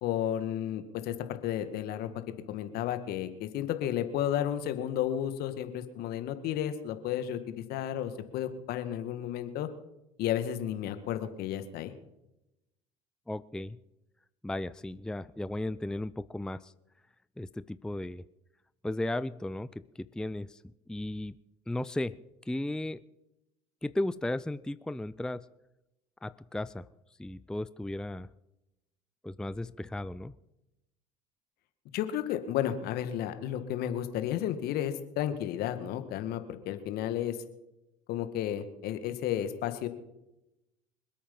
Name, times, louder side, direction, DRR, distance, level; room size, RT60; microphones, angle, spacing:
voice 1, 0.0-2.1 2.5-9.7 10.2-11.9 31.9-37.4 38.1-39.9, left 11 dB, 60° left, 10 dB, 1.8 m, -32 dB
voice 2, 13.3-13.8 14.4-16.7 17.4-18.2 18.8-20.6 20.9-21.3 21.7-22.2 22.5-23.0 23.8-25.5 26.2-26.8 27.2-28.3 29.2-30.3, left 1 dB, 5° left, 16 dB, 0.5 m, -35 dB
26.0 x 8.6 x 5.5 m, 0.92 s
hypercardioid pair, 65°, 18 cm